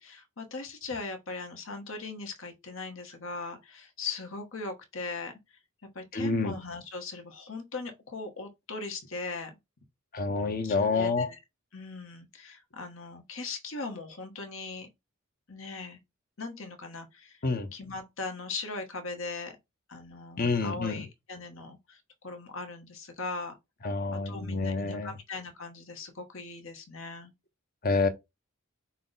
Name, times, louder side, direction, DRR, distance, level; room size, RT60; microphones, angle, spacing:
voice 1, 0.0-5.4 5.9-9.5 10.6-11.4 11.7-14.9 15.5-16.0 16.4-17.4 17.7-19.6 19.9-23.6 24.1-27.3, left 3 dB, 65° left, 1.3 m, -39 dB
voice 2, 6.1-6.5 10.1-11.3 17.4-17.7 20.4-21.0 23.8-25.1 27.8-28.1, left 3 dB, 45° left, 0.8 m, -28 dB
5.7 x 2.2 x 4.0 m
head